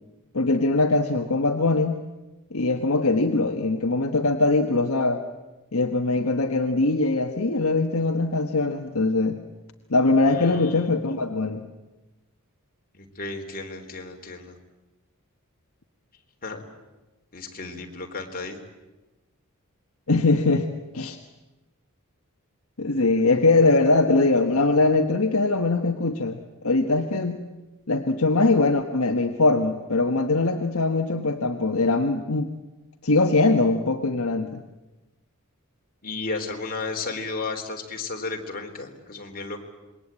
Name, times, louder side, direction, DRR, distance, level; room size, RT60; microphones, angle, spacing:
voice 1, 0.3-2.0 2.5-5.2 5.7-9.4 9.9-11.6 20.1-20.7 20.9-21.2 22.8-26.4 26.6-27.4 27.9-32.5 33.0-34.6, left 3 dB, 65° left, 4 dB, 1.5 m, -22 dB
voice 2, 10.3-11.0 12.9-14.6 16.4-16.6 17.3-18.6 36.0-39.6, left 3 dB, 40° left, 3 dB, 3.6 m, -33 dB
27.0 x 22.0 x 8.8 m, 1.1 s
head